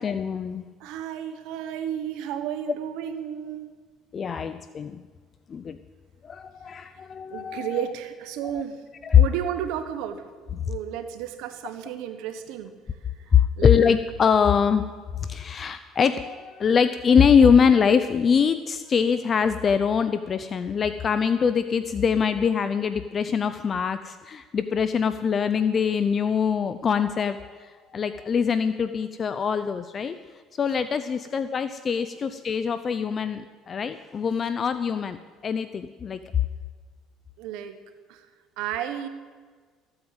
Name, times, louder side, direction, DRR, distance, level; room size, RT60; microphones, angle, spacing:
voice 1, 0.0-0.6 4.1-5.0 5.5-5.8 6.2-7.8 8.5-8.6 9.0-9.2 13.3-14.9 15.2-35.2 35.4-36.2, left 7 dB, 35° left, 11 dB, 0.6 m, -23 dB
voice 2, 0.8-3.7 7.3-8.8 9.1-10.2 10.7-12.7 13.6-13.7 37.4-37.8 38.1-38.3 38.6-39.1, right 10 dB, 80° right, 9 dB, 1.2 m, -32 dB
14.5 x 8.7 x 8.0 m, 1.5 s
cardioid pair, 105°, 0 cm